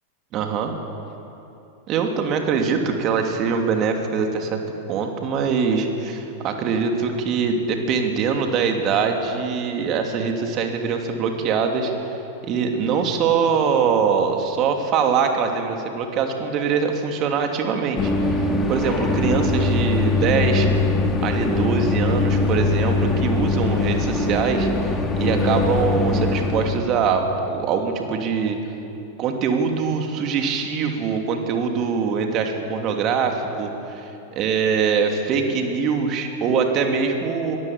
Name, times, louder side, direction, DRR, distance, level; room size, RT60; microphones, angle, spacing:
voice 1, 0.3-0.7 1.9-4.6 4.9-12.1 12.4-20.7 21.2-28.6 29.2-37.6, right 5 dB, 35° right, 4 dB, 2.8 m, -23 dB
sound 1, 18.0-26.8, left 3 dB, 15° left, 1.9 m, -21 dB
22.0 x 19.0 x 7.5 m, 2.9 s
figure-of-eight pair, 90°, 0 cm